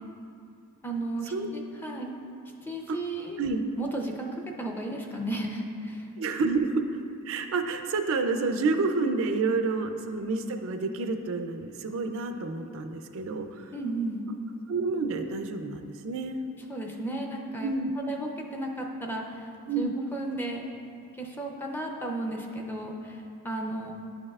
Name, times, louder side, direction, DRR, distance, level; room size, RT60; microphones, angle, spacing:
voice 1, 0.8-2.1 2.6-3.4 3.8-4.3 4.6-6.1 6.4-6.6 13.7-14.2 16.7-19.5 19.8-20.7 21.2-23.9, right 2 dB, 10° left, 1 dB, 0.5 m, -34 dB
voice 2, 6.2-6.7 7.2-13.7 14.7-16.4 17.6-17.9 19.7-19.9, right 3 dB, 65° right, 6 dB, 0.4 m, -29 dB
11.0 x 5.4 x 2.3 m, 2.5 s
head